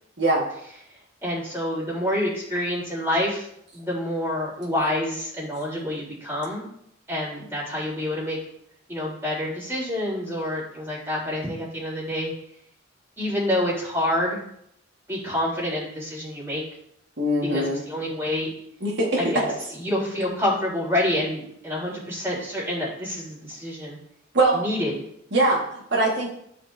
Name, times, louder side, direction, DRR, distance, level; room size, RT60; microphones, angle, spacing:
voice 1, 0.2-0.5 17.2-17.8 18.8-19.4 24.3-24.6 25.3-26.3, right 2 dB, 65° right, -3 dB, 1.6 m, -22 dB
voice 2, 1.2-3.5 3.7-6.7 7.1-8.4 8.9-12.3 13.2-14.4 15.1-16.6 17.4-18.5 19.2-19.5 19.8-24.0 24.5-24.9, left 1 dB, 15° right, -5 dB, 3.5 m, -27 dB
13.5 x 5.1 x 2.7 m, 0.72 s
head